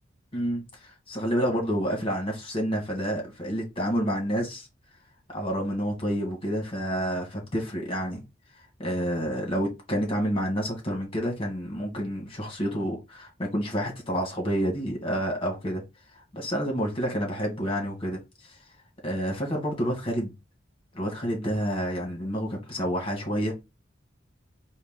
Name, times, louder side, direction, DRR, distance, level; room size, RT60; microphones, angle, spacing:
voice 1, 0.3-4.7 5.3-8.2 8.8-15.8 16.3-18.2 19.0-20.3 20.9-23.5, equal, 30° left, 1.9 m, -29 dB
4.7 x 2.6 x 3.8 m
head